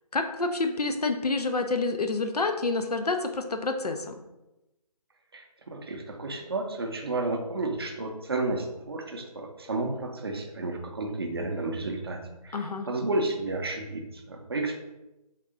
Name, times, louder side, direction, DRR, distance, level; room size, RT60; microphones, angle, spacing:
voice 1, 0.1-4.2 12.5-12.9, left 3 dB, 80° left, 6 dB, 0.6 m, -28 dB
voice 2, 5.3-14.8, right 2 dB, 40° right, 3 dB, 0.5 m, -32 dB
3.6 x 2.7 x 3.7 m, 0.97 s
figure-of-eight pair, 155°, 20 cm